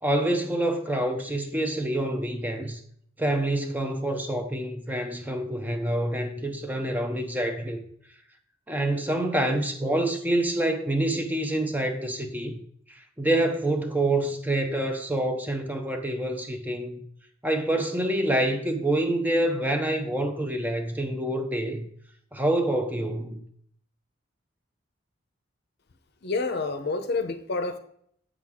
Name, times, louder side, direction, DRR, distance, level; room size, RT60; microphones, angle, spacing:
voice 1, 0.0-2.8 3.2-7.8 8.7-12.6 12.9-17.1 17.4-21.9 22.3-23.4, right 1 dB, 10° right, 0.7 m, -27 dB
voice 2, 26.2-27.8, left 3 dB, 55° left, 0.7 m, -28 dB
8.1 x 6.0 x 3.6 m
head